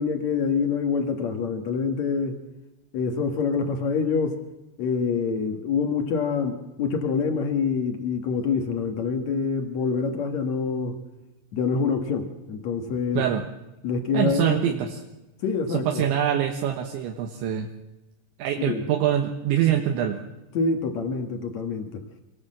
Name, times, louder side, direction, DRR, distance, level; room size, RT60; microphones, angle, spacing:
voice 1, 0.0-2.4 2.9-4.4 4.8-11.0 11.5-13.2 13.8-14.8 15.4-16.0 18.6-18.8 20.5-22.0, left 5 dB, 70° left, 5 dB, 1.7 m, -26 dB
voice 2, 12.9-13.5 14.1-15.0 15.7-17.7 18.4-20.2, right 10 dB, 75° right, 4 dB, 3.4 m, -25 dB
25.5 x 18.0 x 7.5 m, 1.0 s
omnidirectional pair, 5.6 m